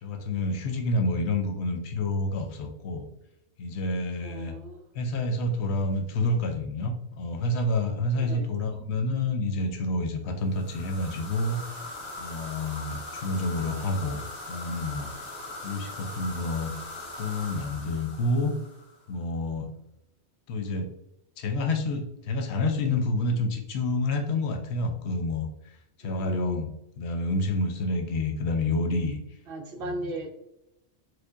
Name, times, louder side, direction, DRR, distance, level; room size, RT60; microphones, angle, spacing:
voice 1, 0.0-3.1 3.6-4.5 4.9-11.6 12.2-15.1 15.6-16.7 17.2-18.5 19.1-19.7 20.5-20.9 21.4-26.7 27.0-29.2 29.8-29.9, left 2 dB, 75° left, 4 dB, 0.8 m, -28 dB
voice 2, 4.2-4.9 8.2-8.5 26.0-26.6 29.5-30.3, right 1 dB, 65° right, 2 dB, 0.7 m, -37 dB
sound 1, 10.5-19.0, left 2 dB, 40° left, 0.9 m, -40 dB
4.4 x 2.2 x 2.5 m, 0.86 s
omnidirectional pair, 1.2 m